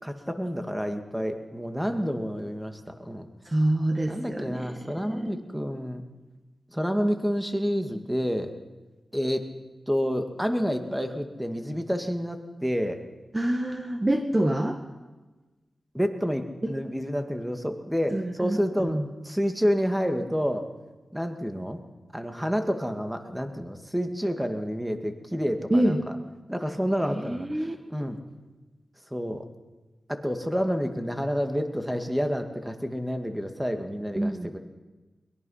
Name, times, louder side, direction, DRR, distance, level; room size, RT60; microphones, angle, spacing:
voice 1, 0.0-3.3 4.1-6.0 6.7-8.5 9.1-9.5 9.9-13.0 15.9-20.7 21.1-21.8 22.1-26.0 26.5-28.2 29.1-29.4 30.1-34.6, equal, 5° right, 6 dB, 2.1 m, -29 dB
voice 2, 3.4-4.7 5.0-5.4 13.3-14.8 16.6-16.7 18.1-19.0 25.7-26.0 27.1-27.7 34.1-34.5, right 1 dB, 25° right, 5 dB, 1.7 m, -26 dB
22.5 x 21.5 x 5.7 m, 1.2 s
wide cardioid pair, 75°, 0 cm